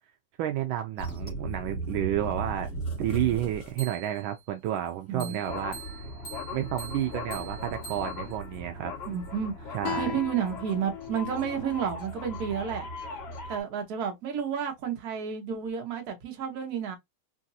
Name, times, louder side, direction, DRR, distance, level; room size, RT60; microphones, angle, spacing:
voice 1, 0.4-2.7 3.0-5.8 6.5-8.9 9.7-10.2, right 12 dB, 80° right, 1.3 m, -30 dB
sound 1, 1.0-4.3 5.2-13.6, equal, 50° left, 1.9 m, -38 dB
voice 2, 5.1-5.4 9.1-12.9 13.5-17.0, right 7 dB, 55° right, 1.3 m, -31 dB
Guitar, 9.8-13.1, left 9 dB, 90° left, 1.6 m, -39 dB
3.9 x 2.5 x 2.6 m
omnidirectional pair, 2.2 m